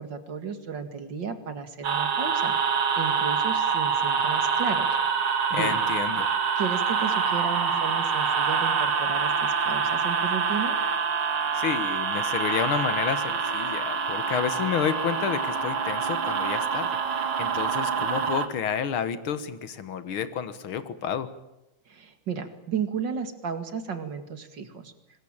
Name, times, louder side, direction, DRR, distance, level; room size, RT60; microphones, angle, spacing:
voice 1, 0.0-5.0 5.2-5.8 6.6-10.8 21.9-24.9, right 6 dB, 60° right, 9 dB, 2.7 m, -34 dB
sound 1, 1.8-18.5, right 6 dB, 90° right, 2.9 m, -26 dB
voice 2, 5.5-6.3 11.5-21.3, left 8 dB, 85° left, 12 dB, 2.2 m, -30 dB
25.0 x 21.0 x 8.8 m, 0.92 s
omnidirectional pair, 2.3 m